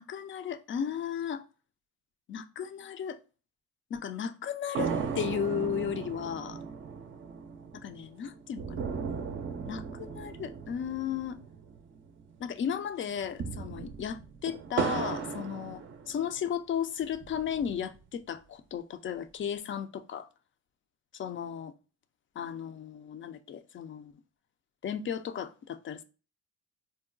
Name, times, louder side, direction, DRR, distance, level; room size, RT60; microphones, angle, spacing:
voice 1, 0.0-1.4 2.3-3.2 3.9-6.6 7.8-8.8 9.6-11.4 12.4-20.3 21.1-21.7 22.4-24.1 24.8-26.0, left 8 dB, 40° left, 0.4 m, -35 dB
sound 1, 4.7-12.3 12.6-12.7 13.2-16.5 17.0-18.0, right 6 dB, 40° right, 0.5 m, -37 dB
3.8 x 2.1 x 2.4 m
supercardioid pair, 65°, 30 cm